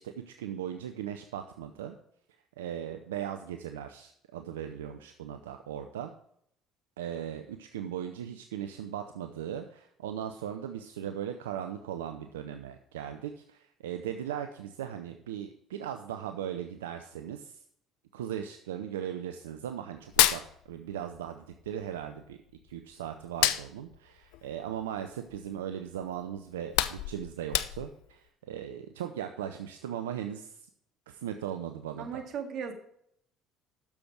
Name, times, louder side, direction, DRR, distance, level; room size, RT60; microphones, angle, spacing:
voice 1, 0.0-2.0 2.6-6.1 7.0-17.6 18.1-22.4 22.6-30.7 31.1-32.2, right 9 dB, 85° right, 7 dB, 0.6 m, -38 dB
Hands, 20.0-21.3 21.5-22.8 23.2-25.6 26.0-26.1 26.5-28.1, left 14 dB, 75° left, 0.5 m, -29 dB
voice 2, 32.0-32.7, right 7 dB, 60° right, 5 dB, 2.0 m, -36 dB
10.5 x 7.0 x 4.5 m, 0.70 s
hypercardioid pair, 60°, 0 cm